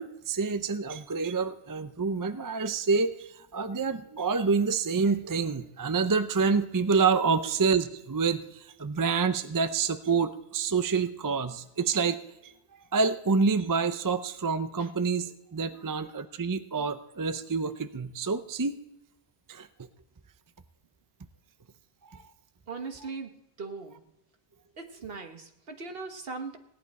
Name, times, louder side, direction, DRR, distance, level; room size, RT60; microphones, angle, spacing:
voice 1, 0.0-12.5 12.9-18.8 19.5-19.9 22.1-22.2, right 5 dB, 25° right, 10 dB, 0.5 m, -27 dB
voice 2, 22.7-24.0 24.8-26.6, right 4 dB, 65° right, 5 dB, 1.5 m, -39 dB
17.5 x 11.0 x 4.2 m, 0.88 s
omnidirectional pair, 1.1 m